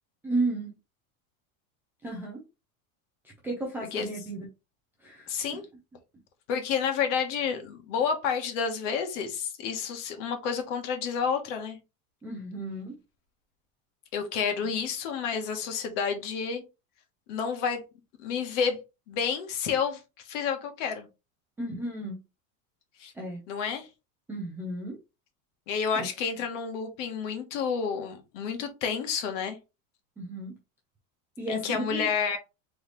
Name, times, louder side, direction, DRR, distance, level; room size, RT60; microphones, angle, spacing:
voice 1, 0.2-0.7 2.0-2.4 3.2-4.5 5.0-5.3 12.2-12.9 21.6-22.2 23.1-23.4 24.3-25.0 25.9-26.1 30.2-30.5 31.4-32.1, right 2 dB, 5° right, 0.3 m, -33 dB
voice 2, 5.3-5.6 6.5-11.8 14.1-16.6 17.3-17.8 18.2-18.8 19.1-21.1 23.0-23.1 23.5-23.9 25.7-29.6 31.5-32.4, left 6 dB, 60° left, 1.3 m, -30 dB
3.9 x 3.2 x 3.1 m
supercardioid pair, 155°, 43 cm